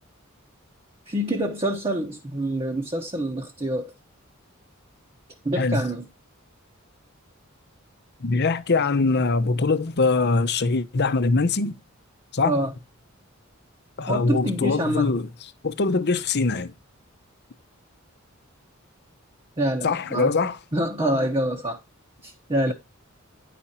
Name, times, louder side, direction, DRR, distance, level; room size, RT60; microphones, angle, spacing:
voice 1, 1.1-3.9 5.4-6.1 12.4-12.7 14.1-15.2 19.6-20.3 20.7-21.8 22.2-22.7, right 1 dB, 25° right, 1.1 m, -26 dB
voice 2, 8.2-11.8 12.3-12.5 14.0-15.3 15.6-16.7 19.8-20.6 22.7-22.8, left 3 dB, 55° left, 0.8 m, -22 dB
10.0 x 5.0 x 4.3 m
head